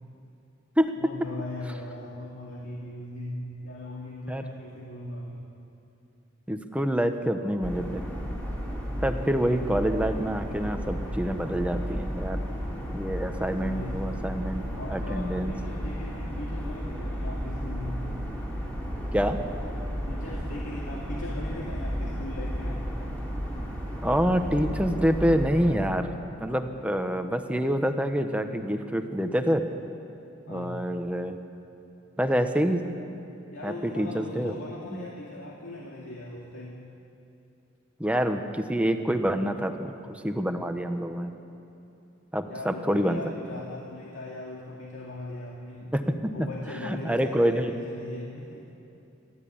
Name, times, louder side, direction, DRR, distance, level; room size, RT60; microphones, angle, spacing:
voice 1, 1.0-5.4 13.6-14.4 14.7-18.0 20.1-22.8 30.5-30.8 33.5-36.8 42.5-45.9 46.3-48.6, left 1 dB, 85° left, -3 dB, 2.3 m, -39 dB
voice 2, 6.5-8.0 9.0-12.4 12.9-14.6 14.9-15.5 19.1-19.4 24.0-29.6 30.5-31.4 32.2-32.8 33.6-34.5 34.9-35.0 38.0-41.3 42.3-43.2 45.9-46.5 46.8-47.7, equal, 5° right, 7 dB, 1.0 m, -27 dB
sound 1, 7.6-25.8, equal, 10° left, 3.1 m, -33 dB
27.5 x 12.5 x 8.7 m, 2.7 s
head